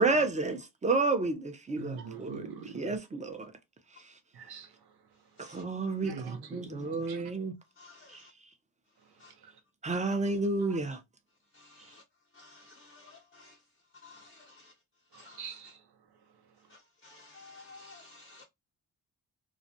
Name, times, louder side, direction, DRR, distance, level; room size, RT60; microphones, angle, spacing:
voice 1, 0.0-2.4 2.7-3.5 5.4-7.5 8.1-8.2 9.8-11.0, right 3 dB, 20° right, 0.6 m, -30 dB
voice 2, 1.8-2.9 4.3-4.7 6.0-7.2 9.4-9.5 9.9-10.0 10.6-10.8 15.1-15.8, right 6 dB, 80° right, 0.7 m, -43 dB
voice 3, 7.8-8.3 9.2-9.3 11.6-12.0 12.4-13.5 14.0-14.7 15.1-15.5 17.0-18.4, left 3 dB, 30° left, 0.5 m, -54 dB
2.4 x 2.1 x 2.7 m
cardioid pair, 80°, 38 cm